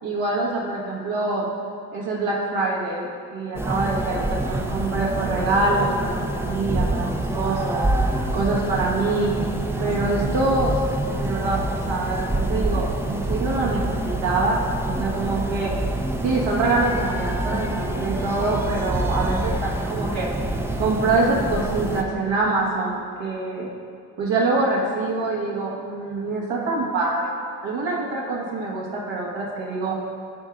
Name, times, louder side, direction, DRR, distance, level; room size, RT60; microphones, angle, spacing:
voice 1, 0.0-1.5 1.9-7.1 7.3-7.8 8.3-9.3 9.8-10.8 11.2-14.6 14.9-15.7 16.2-20.3 20.8-23.7 24.2-27.3 27.6-30.0, right 3 dB, 65° right, -3 dB, 1.6 m, -25 dB
sound 1, 3.5-22.0, right 1 dB, 5° right, 0.5 m, -26 dB
11.5 x 4.6 x 2.6 m, 2.4 s
supercardioid pair, 55°, 49 cm